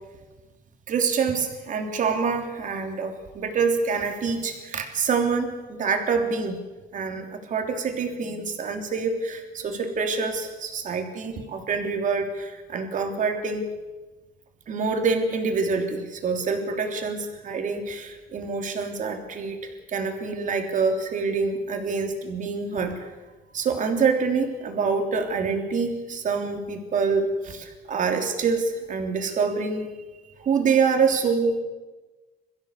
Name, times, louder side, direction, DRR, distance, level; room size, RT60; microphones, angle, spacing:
voice 1, 0.9-6.6 6.9-13.7 14.7-23.1 23.5-29.9 30.4-31.6, right 5 dB, 50° right, 5 dB, 3.2 m, -26 dB
22.5 x 15.0 x 8.3 m, 1.2 s
cardioid pair, 110°, 17 cm